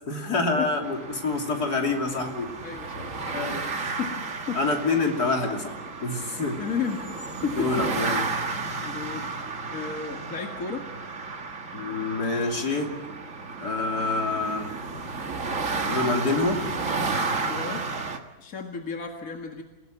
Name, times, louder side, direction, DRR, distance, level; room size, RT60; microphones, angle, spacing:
voice 1, 0.1-2.5 3.0-3.6 4.5-6.6 7.6-8.3 11.7-12.9 13.6-14.8 15.9-16.6, left 3 dB, 70° left, 1 dB, 3.6 m, -27 dB
sound 1, 0.8-18.2, right 4 dB, 50° right, 2.0 m, -32 dB
voice 2, 2.6-3.2 4.0-4.6 6.6-7.7 8.8-9.3 9.7-10.9 17.5-17.9 18.4-19.6, left 6 dB, 55° left, 2 dB, 2.2 m, -33 dB
28.0 x 17.5 x 7.7 m, 1.1 s
omnidirectional pair, 1.7 m